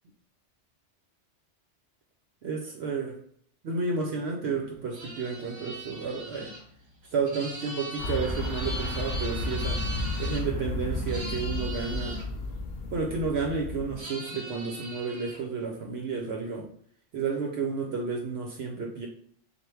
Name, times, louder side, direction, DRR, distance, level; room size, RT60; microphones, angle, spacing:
voice 1, 2.4-3.2 3.6-6.5 7.1-9.8 10.2-12.2 12.9-16.7 17.1-19.1, right 4 dB, 65° right, 0 dB, 0.8 m, -31 dB
sound 1, 4.9-10.4 11.1-12.2 14.0-15.4, right 1 dB, 40° right, 1.0 m, -40 dB
sound 2, 8.0-14.0, left 2 dB, 60° left, 0.8 m, -32 dB
3.3 x 2.4 x 4.4 m, 0.62 s
omnidirectional pair, 1.2 m